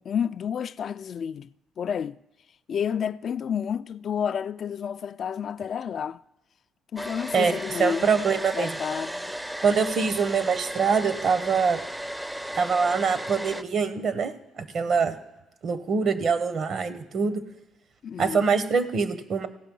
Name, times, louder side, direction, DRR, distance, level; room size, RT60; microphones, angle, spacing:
voice 1, 0.0-1.5 1.8-2.2 2.7-6.2 6.9-8.1 8.5-9.3 18.0-18.5, left 8 dB, 55° left, 0.3 m, -30 dB
Domestic sounds home sounds, 7.0-13.6, equal, 5° right, 0.5 m, -35 dB
voice 2, 7.3-8.8 9.6-11.8 12.5-15.2 15.6-17.4 18.2-19.5, right 5 dB, 55° right, 1.0 m, -24 dB
16.5 x 5.7 x 5.4 m
supercardioid pair, 70°, 0 cm